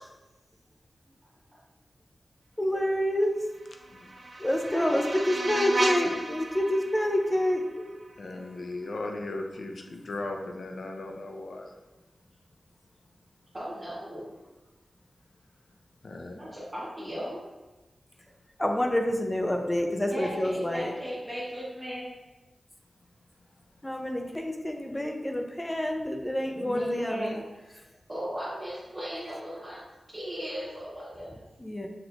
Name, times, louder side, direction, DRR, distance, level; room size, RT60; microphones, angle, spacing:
voice 1, 2.6-3.3 4.4-7.9 18.6-20.9 23.8-27.4 31.6-31.9, left 1 dB, 15° left, 3 dB, 0.5 m, -28 dB
sound 1, 3.5-8.5, right 2 dB, 50° right, 0.5 m, -34 dB
voice 2, 4.7-5.7 13.5-14.4 16.4-17.5 20.1-22.1 26.6-27.5 28.1-29.8 30.1-31.5, equal, 20° right, -9 dB, 1.0 m, -36 dB
voice 3, 8.2-11.7 16.0-16.4, left 2 dB, 60° left, 3 dB, 0.6 m, -37 dB
5.9 x 3.0 x 2.5 m, 1.1 s
wide cardioid pair, 95°, 0 cm